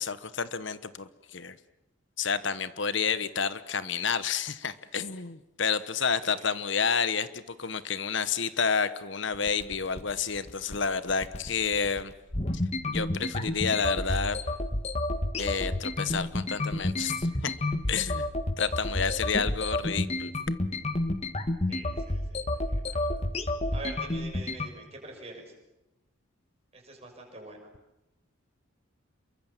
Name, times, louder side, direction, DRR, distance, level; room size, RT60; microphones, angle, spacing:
voice 1, 0.0-1.5 2.2-12.1 12.9-14.4 15.4-17.5 17.9-18.3 18.6-20.3, left 6 dB, 60° left, 13 dB, 1.1 m, -30 dB
voice 2, 6.2-6.5 21.7-23.1 23.7-25.5 26.7-27.7, right 2 dB, 30° right, 1 dB, 6.6 m, -45 dB
sound 1, 9.3-24.7, left 1 dB, 30° left, 1.4 m, -30 dB
28.0 x 23.5 x 7.4 m, 0.95 s
head